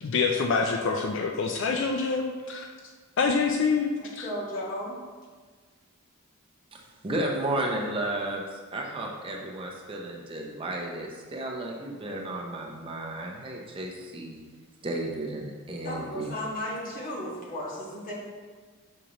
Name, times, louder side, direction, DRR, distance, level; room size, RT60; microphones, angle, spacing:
voice 1, 0.0-2.7 3.2-4.3, left 4 dB, 55° left, 3 dB, 0.3 m, -26 dB
voice 2, 4.0-5.0 15.8-18.1, left 1 dB, 40° left, -5 dB, 1.3 m, -35 dB
voice 3, 6.7-14.4 14.8-16.3, right 1 dB, 25° right, -1 dB, 0.6 m, -33 dB
6.3 x 5.1 x 2.9 m, 1.5 s
head